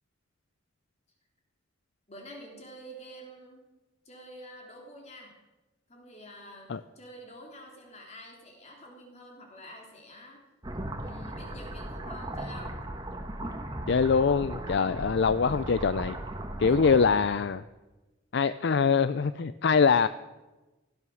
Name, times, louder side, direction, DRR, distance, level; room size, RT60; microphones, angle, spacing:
voice 1, 2.1-3.6 4.1-5.4 5.9-10.4 11.0-12.8 15.5-15.7 16.7-17.1, equal, 35° left, 1 dB, 3.5 m, -48 dB
sound 1, 10.6-17.3, right 1 dB, 20° right, 1.6 m, -37 dB
voice 2, 13.9-16.2 16.6-17.6 18.3-20.1, left 5 dB, 60° left, 14 dB, 0.5 m, -23 dB
16.5 x 13.0 x 6.3 m, 1.1 s
head